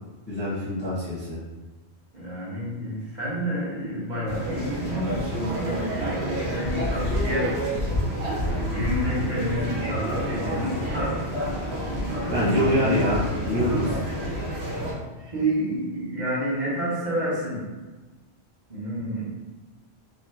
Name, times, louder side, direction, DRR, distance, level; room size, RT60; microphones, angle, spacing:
voice 1, 0.3-1.4 12.3-14.0, left 1 dB, 10° left, -10 dB, 0.6 m, -24 dB
voice 2, 2.1-7.6 8.7-11.2 12.1-12.6 15.2-17.7 18.7-19.2, equal, 45° right, -9 dB, 1.1 m, -29 dB
sound 1, 4.3-14.9, equal, 65° right, 1.1 m, -28 dB
3.4 x 2.8 x 2.2 m, 1.2 s
omnidirectional pair, 1.2 m